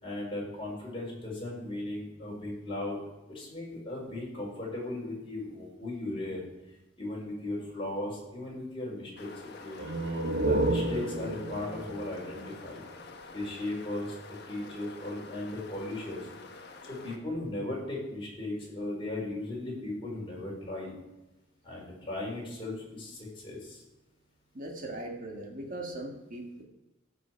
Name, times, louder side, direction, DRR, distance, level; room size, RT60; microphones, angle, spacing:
voice 1, 0.0-3.0 3.3-6.4 7.0-9.8 10.4-12.8 13.3-14.1 14.5-16.3 16.8-20.9 21.6-23.8, left 2 dB, 30° left, -4 dB, 4.6 m, -37 dB
sound 1, 9.2-17.2, left 3 dB, 55° left, 1.3 m, -48 dB
sound 2, 9.7-13.3, right 2 dB, 60° right, 1.2 m, -31 dB
voice 2, 24.5-26.6, right 1 dB, 45° right, 1 dB, 1.9 m, -39 dB
15.0 x 6.2 x 4.6 m, 1.0 s
head